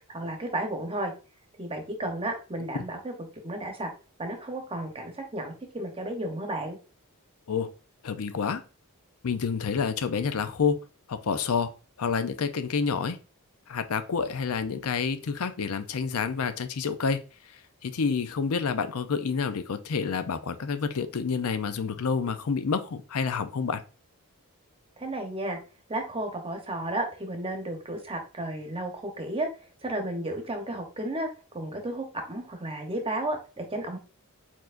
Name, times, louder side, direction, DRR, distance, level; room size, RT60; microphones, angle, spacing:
voice 1, 0.1-1.1 1.6-3.1 3.4-3.9 4.2-6.8 25.0-25.6 25.9-29.5 29.8-31.3 31.5-34.0, right 1 dB, 25° right, 4 dB, 1.0 m, -33 dB
voice 2, 8.0-8.6 9.2-10.8 11.1-11.7 12.0-13.2 13.7-17.2 17.8-23.8, left 5 dB, 70° left, 10 dB, 0.5 m, -28 dB
4.5 x 4.4 x 2.5 m, 0.35 s
head